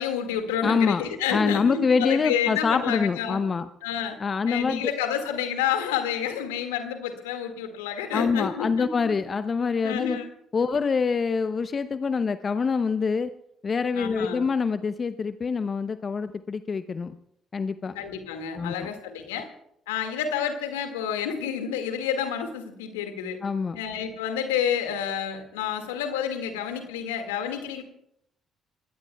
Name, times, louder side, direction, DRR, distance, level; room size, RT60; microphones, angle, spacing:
voice 1, 0.0-3.5 3.8-4.2 4.5-8.9 9.8-10.3 13.9-14.4 17.9-19.5 19.9-23.4 23.8-27.8, left 8 dB, 85° left, 6 dB, 1.9 m, -29 dB
voice 2, 0.6-1.0 1.3-3.7 4.2-4.9 8.1-10.2 10.5-13.3 13.6-17.1 17.5-17.9 18.5-18.9 23.4-23.8, left 5 dB, 40° left, 12 dB, 0.7 m, -25 dB
26.0 x 21.0 x 2.3 m, 0.75 s
hypercardioid pair, 50°, 0 cm